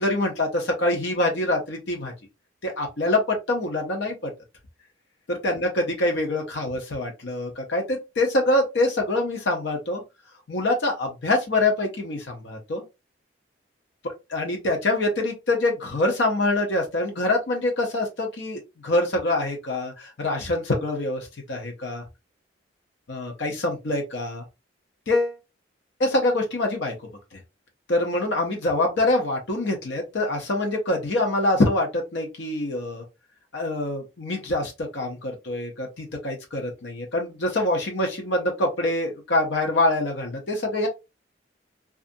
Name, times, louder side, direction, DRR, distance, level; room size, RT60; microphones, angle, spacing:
voice 1, 0.0-2.1 2.6-4.3 5.3-10.0 10.5-12.8 14.3-22.0 23.1-24.4 25.1-25.4 26.0-26.9 27.3-27.4 27.9-33.0 33.5-40.9, left 2 dB, 65° left, 0.6 m, -25 dB
2.5 x 2.4 x 2.5 m
head